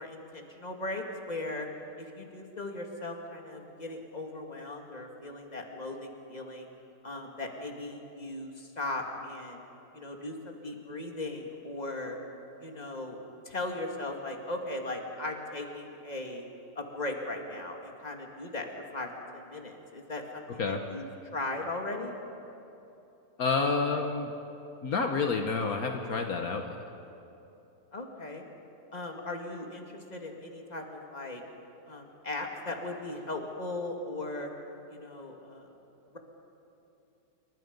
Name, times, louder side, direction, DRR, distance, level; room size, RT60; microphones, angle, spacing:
voice 1, 0.0-1.7 2.0-6.7 7.0-9.6 9.9-12.2 12.6-13.2 13.5-16.4 16.8-18.7 18.9-19.1 19.3-21.1 21.3-22.1 27.9-28.4 28.9-29.8 30.1-31.4 31.9-34.5 34.9-35.7, left 2 dB, 25° left, 2 dB, 2.4 m, -38 dB
voice 2, 23.4-24.3 24.8-26.8, left 4 dB, 70° left, 4 dB, 1.6 m, -29 dB
27.5 x 23.5 x 5.4 m, 2.9 s
omnidirectional pair, 1.7 m